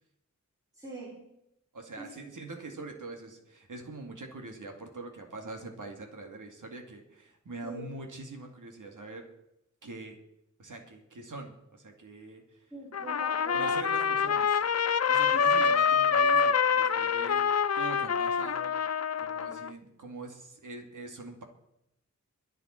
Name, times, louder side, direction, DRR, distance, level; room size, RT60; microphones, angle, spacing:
voice 1, 0.7-1.3 2.0-2.2 7.6-7.8 12.7-13.9 15.3-15.5, right 2 dB, 10° right, -4 dB, 3.9 m, -42 dB
voice 2, 1.7-9.3 9.8-10.2 10.6-12.6 13.5-14.6 15.1-17.5 17.8-18.8 19.2-21.4, right 3 dB, 80° right, 3 dB, 2.3 m, -43 dB
Trumpet, 12.9-19.7, left 6 dB, 55° left, 0.6 m, -26 dB
23.5 x 8.0 x 4.5 m, 0.81 s
wide cardioid pair, 85°, 30 cm